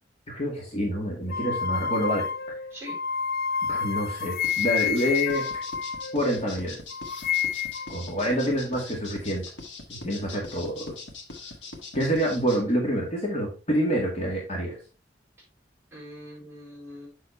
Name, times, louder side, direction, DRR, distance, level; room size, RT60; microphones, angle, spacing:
voice 1, 0.3-2.3 3.7-5.4 6.1-6.8 7.9-9.4 9.9-10.8 11.9-14.8, equal, 35° left, -1 dB, 2.0 m, -27 dB
sound 1, 1.3-6.6 6.9-8.0, left 7 dB, 55° left, 0.4 m, -29 dB
sound 2, 4.4-12.6, left 3 dB, 75° left, 1.7 m, -41 dB
voice 2, 8.1-8.5 10.2-10.4 15.9-17.1, right 1 dB, 15° right, -5 dB, 4.8 m, -42 dB
7.3 x 6.2 x 3.3 m, 0.32 s
head